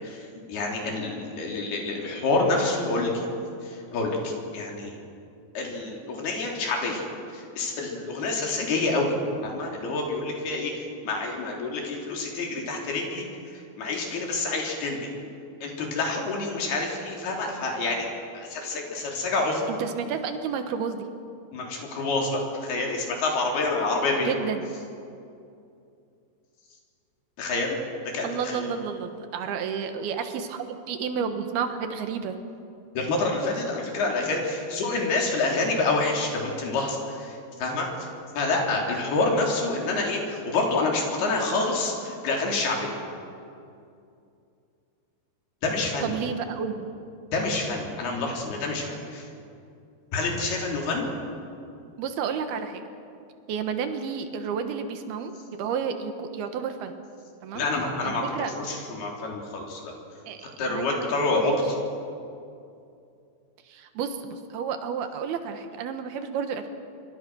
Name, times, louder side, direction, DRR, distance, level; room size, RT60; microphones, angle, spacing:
voice 1, 0.0-3.3 3.6-4.9 5.6-7.0 7.3-9.1 9.4-13.3 13.5-15.1 15.6-19.6 21.5-24.3 27.4-27.8 28.1-28.7 33.0-38.1 38.4-42.9 45.6-46.1 47.3-49.3 50.1-51.1 57.5-59.9 60.6-61.5, left 3 dB, 75° left, 0 dB, 5.4 m, -27 dB
voice 2, 19.8-21.1 24.3-24.7 28.2-32.4 46.0-46.9 52.0-52.8 53.5-56.9 57.4-57.6 58.0-58.5 60.3-61.1 61.3-61.6 63.6-66.7, right 6 dB, 80° right, 7 dB, 3.2 m, -31 dB
26.5 x 24.0 x 6.3 m, 2.5 s
omnidirectional pair, 4.5 m